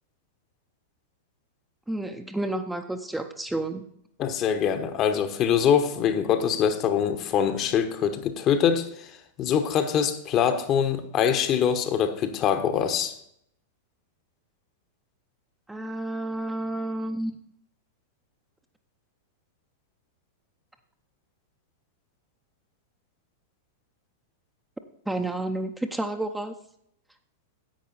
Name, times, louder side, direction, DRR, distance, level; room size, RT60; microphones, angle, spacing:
voice 1, 1.9-3.8 15.7-17.3 25.1-26.5, right 1 dB, 5° right, 5 dB, 0.7 m, -30 dB
voice 2, 4.2-13.2, left 8 dB, 35° left, 8 dB, 1.1 m, -24 dB
10.5 x 8.4 x 4.0 m, 0.71 s
figure-of-eight pair, 95°, 0 cm